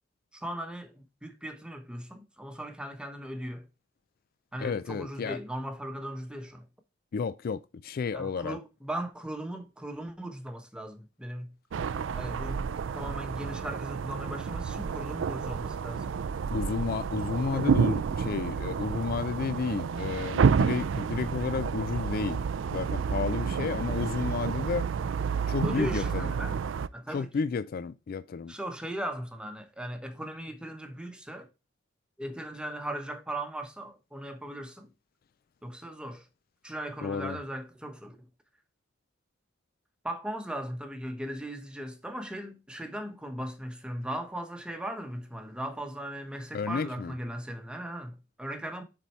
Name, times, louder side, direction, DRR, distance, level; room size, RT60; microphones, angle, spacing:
voice 1, 0.3-3.7 4.5-6.7 8.1-11.5 12.1-16.1 25.6-26.6 26.9-27.3 28.5-31.5 32.2-34.9 35.6-36.3 36.6-38.3 40.0-48.8, right 1 dB, 5° right, 1.0 m, -38 dB
voice 2, 4.6-5.4 7.1-8.6 16.5-22.4 22.7-24.9 25.5-26.3 27.1-28.5 37.0-37.4 46.5-47.1, left 5 dB, 50° left, 0.3 m, -32 dB
sound 1, 11.7-26.9, right 6 dB, 80° right, 0.4 m, -30 dB
7.4 x 4.2 x 4.5 m
head